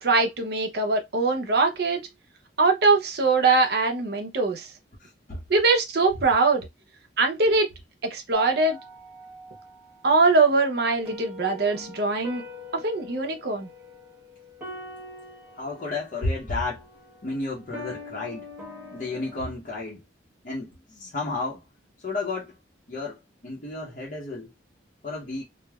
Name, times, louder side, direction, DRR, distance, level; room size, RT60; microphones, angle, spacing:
voice 1, 0.0-2.1 2.6-4.7 5.5-6.7 7.2-7.7 8.1-8.8 10.0-12.4 12.7-13.7, right 3 dB, 55° right, 0.7 m, -22 dB
voice 2, 5.0-5.4 15.5-16.8 17.2-18.5 18.9-20.0 20.4-21.6 22.0-22.5 22.9-24.5 25.0-25.4, left 3 dB, 45° left, 0.7 m, -32 dB
sound 1, 8.3-19.4, left 1 dB, 10° right, 0.9 m, -43 dB
3.2 x 2.0 x 2.2 m
head